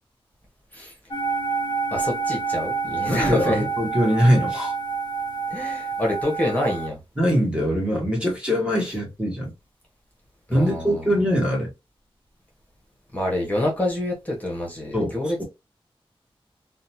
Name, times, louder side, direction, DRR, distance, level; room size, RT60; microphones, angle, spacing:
sound 1, 1.1-6.9, right 4 dB, 50° left, 0.5 m, -28 dB
voice 1, 1.9-3.7 5.5-7.0 10.5-11.1 13.1-15.4, left 1 dB, 15° left, 1.0 m, -27 dB
voice 2, 3.1-4.7 7.2-9.5 10.5-11.7 14.9-15.4, equal, 10° right, 1.1 m, -22 dB
2.7 x 2.2 x 2.7 m
wide cardioid pair, 105°, 10 cm